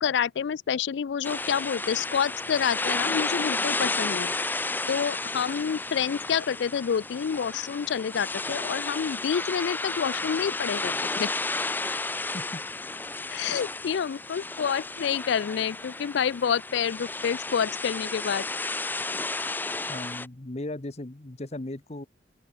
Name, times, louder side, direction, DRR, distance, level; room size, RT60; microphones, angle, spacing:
voice 1, 0.0-4.3 4.9-11.3 13.3-18.5, left 7 dB, 70° left, 0.4 m, -28 dB
sound 1, 1.2-20.3, left 3 dB, 10° left, 0.5 m, -32 dB
voice 2, 19.9-22.1, left 1 dB, 35° left, 1.0 m, -37 dB
open air
head